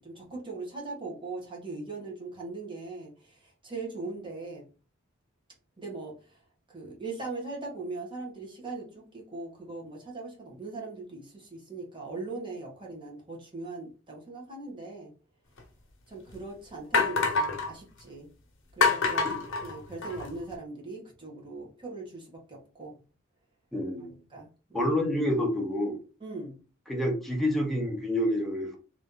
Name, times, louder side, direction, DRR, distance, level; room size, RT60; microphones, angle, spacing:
voice 1, 0.0-3.3 3.6-4.6 5.8-6.1 6.7-15.1 16.1-18.3 18.8-23.0 24.0-24.9 26.2-26.5, right 3 dB, 25° right, -2 dB, 1.4 m, -40 dB
sound 1, 15.6-15.7 16.3-16.4 16.9-17.7 18.8-20.3, left 4 dB, 65° left, 1.0 m, -26 dB
voice 2, 23.7-24.2 24.7-26.0 26.9-28.8, left 1 dB, ahead, -1 dB, 1.0 m, -28 dB
3.2 x 2.8 x 3.9 m, 0.35 s
head